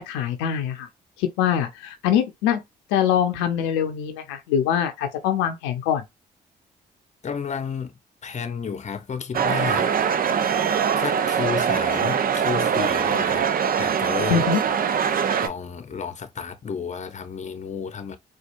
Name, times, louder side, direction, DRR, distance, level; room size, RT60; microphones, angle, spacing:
voice 1, 0.1-0.9 1.2-2.6 2.9-6.0 14.3-14.6, left 9 dB, 90° left, 0.6 m, -23 dB
voice 2, 7.2-10.1 11.0-13.5 13.8-14.5 15.4-18.2, left 6 dB, 40° left, 0.8 m, -32 dB
sound 1, 9.3-15.5, right 7 dB, 50° right, 0.6 m, -22 dB
4.3 x 2.4 x 2.5 m
hypercardioid pair, 50°, 19 cm